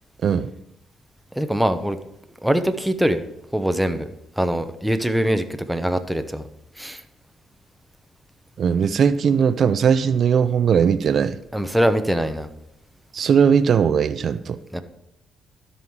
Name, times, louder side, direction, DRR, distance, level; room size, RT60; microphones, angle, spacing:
voice 1, 1.3-2.0 2.4-3.2 3.5-4.1 4.4-6.4 6.8-7.0 11.5-12.5 14.7-14.8, equal, 5° right, 8 dB, 0.8 m, -22 dB
voice 2, 8.6-11.4 13.1-14.6, right 7 dB, 55° right, 12 dB, 0.5 m, -19 dB
12.5 x 5.6 x 4.6 m, 0.83 s
cardioid pair, 90°, 0 cm